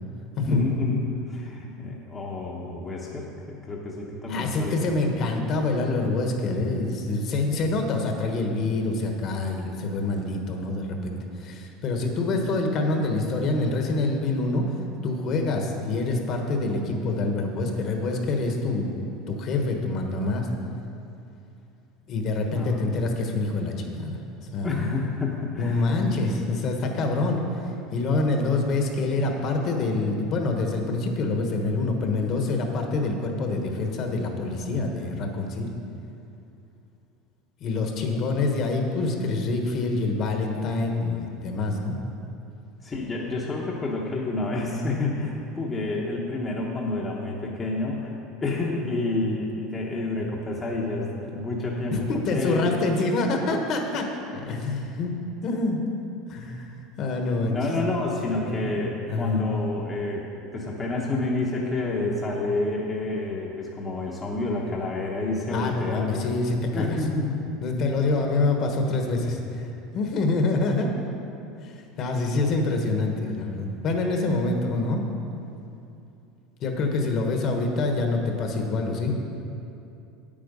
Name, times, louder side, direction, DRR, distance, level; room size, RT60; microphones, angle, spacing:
voice 1, 0.5-5.0 22.5-22.8 24.6-26.0 42.8-52.9 57.5-60.3 60.5-66.1 66.7-67.5, left 2 dB, 20° left, -3 dB, 0.9 m, -29 dB
voice 2, 4.3-14.6 15.0-18.9 19.3-20.5 22.1-24.2 24.5-24.7 25.6-27.4 27.9-35.7 37.6-42.0 49.1-49.2 51.9-54.1 54.3-55.1 55.4-55.8 56.3-57.6 58.5-58.7 59.1-59.4 65.5-67.0 67.6-69.6 69.9-70.9 71.6-71.7 72.0-75.0 76.6-79.1, left 3 dB, 40° left, 3 dB, 1.2 m, -26 dB
9.2 x 8.7 x 5.4 m, 2.7 s
cardioid pair, 150°, 0 cm